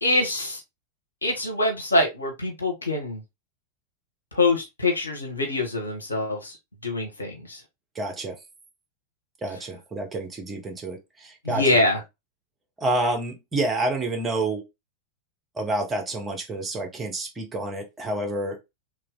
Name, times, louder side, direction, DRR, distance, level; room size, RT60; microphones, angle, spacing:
voice 1, 0.0-0.6 1.2-3.2 4.3-6.5 6.8-7.6 11.4-12.0, left 2 dB, 75° left, 1.2 m, -24 dB
voice 2, 7.9-8.4 9.4-11.8 12.8-14.6 15.5-18.6, right 2 dB, 15° right, 1.2 m, -28 dB
3.2 x 3.0 x 3.8 m
figure-of-eight pair, 90°, 0 cm